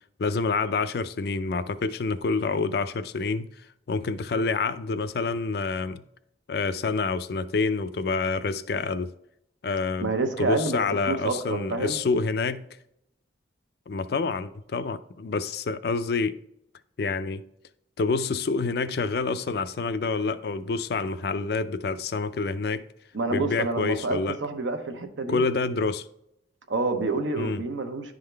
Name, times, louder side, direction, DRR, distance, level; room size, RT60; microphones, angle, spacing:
voice 1, 0.2-3.5 3.9-6.0 6.5-9.1 9.6-10.1 10.4-12.6 13.9-16.4 17.0-17.4 18.0-22.8 23.3-24.4 25.3-26.1 27.4-27.6, left 4 dB, 55° left, 0.4 m, -27 dB
voice 2, 10.0-10.8 11.1-12.0 23.1-25.4 26.7-28.1, right 3 dB, 85° right, 1.0 m, -28 dB
11.0 x 3.7 x 3.3 m
head